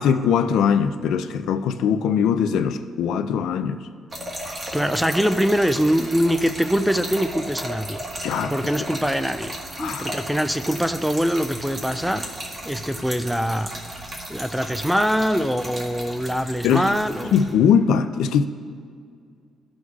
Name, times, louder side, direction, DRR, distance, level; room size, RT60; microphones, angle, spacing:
voice 1, 0.0-3.9 8.2-8.5 9.8-10.1 16.6-16.9 17.3-18.5, left 7 dB, 90° left, 9 dB, 0.4 m, -21 dB
Trickle dribble / Fill (with liquid), 4.1-17.5, right 1 dB, 30° right, 1.4 m, -35 dB
voice 2, 4.7-8.0 8.5-12.2 12.7-13.7 14.3-17.3, equal, ahead, 10 dB, 0.3 m, -23 dB
15.5 x 6.3 x 2.4 m, 2.1 s
cardioid pair, 130°, 0 cm